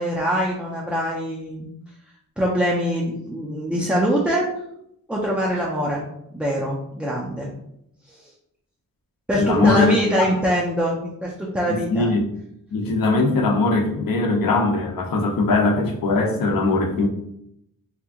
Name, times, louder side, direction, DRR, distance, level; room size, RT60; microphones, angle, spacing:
voice 1, 0.0-1.7 2.4-4.5 5.1-6.0 6.3-7.5 8.1-8.3 9.3-12.1 16.6-17.1, equal, 5° right, -4 dB, 0.4 m, -24 dB
voice 2, 9.4-10.0 11.7-12.2 12.7-17.1, left 3 dB, 80° left, 2 dB, 0.7 m, -20 dB
2.9 x 2.5 x 3.5 m, 0.76 s
wide cardioid pair, 170°, 34 cm